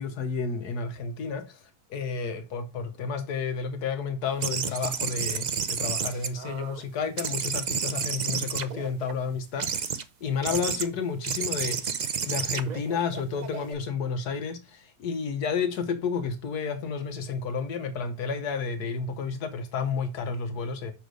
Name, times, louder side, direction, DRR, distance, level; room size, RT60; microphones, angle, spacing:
voice 1, 0.0-1.6 1.9-9.9 10.2-20.9, left 5 dB, 85° left, 1.4 m, -31 dB
sound 1, 4.4-6.8 7.2-9.1 9.6-10.0 10.4-10.9 11.2-13.7, right 6 dB, 55° right, 0.5 m, -31 dB
6.4 x 5.3 x 5.1 m
omnidirectional pair, 1.6 m